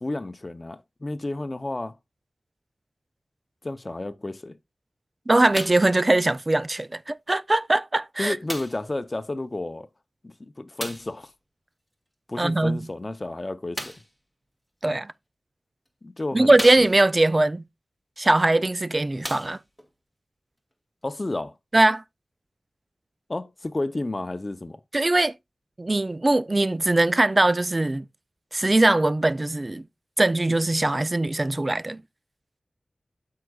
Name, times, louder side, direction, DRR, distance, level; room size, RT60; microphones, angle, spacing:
voice 1, 0.0-2.0 3.6-4.6 8.2-9.9 10.2-11.3 12.3-14.0 16.0-16.9 21.0-21.5 23.3-24.8, left 2 dB, 35° left, 0.7 m, -31 dB
voice 2, 5.3-8.4 12.4-12.8 14.8-15.1 16.3-17.6 18.2-19.6 21.7-22.0 24.9-25.3 25.8-28.1 28.5-29.8 30.2-32.0, right 2 dB, 30° right, 0.4 m, -21 dB
sound 1, 5.5-5.9 6.8-6.9 8.5-8.9 10.8-11.2 13.7-14.2 15.1-15.2 15.8-15.9 16.5-17.2 18.5-18.6 19.1-19.9 20.7-20.8, equal, ahead, 1.8 m, -35 dB
12.5 x 4.8 x 2.4 m
wide cardioid pair, 80°, 0 cm